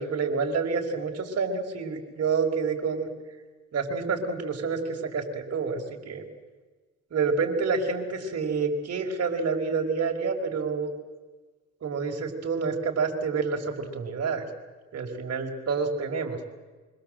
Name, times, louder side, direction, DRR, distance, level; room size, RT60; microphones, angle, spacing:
voice 1, 0.0-3.1 3.7-6.2 7.1-10.9 11.8-14.5 14.9-16.4, right 5 dB, 55° right, 3 dB, 5.2 m, -28 dB
25.5 x 25.0 x 7.8 m, 1.3 s
cardioid pair, 90°, 30 cm